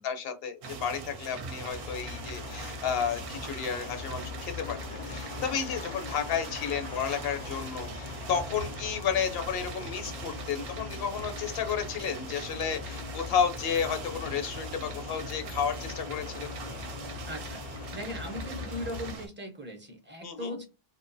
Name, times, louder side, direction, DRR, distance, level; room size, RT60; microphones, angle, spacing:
voice 1, 0.0-16.5 20.2-20.6, left 7 dB, 70° left, 6 dB, 0.8 m, -32 dB
sound 1, 0.6-19.3, right 4 dB, 70° right, 0.8 m, -41 dB
sound 2, 1.7-19.2, left 7 dB, 55° left, 0.5 m, -42 dB
voice 2, 17.2-20.7, equal, 15° right, 2 dB, 0.5 m, -39 dB
2.4 x 2.1 x 2.5 m, 0.28 s
omnidirectional pair, 1.0 m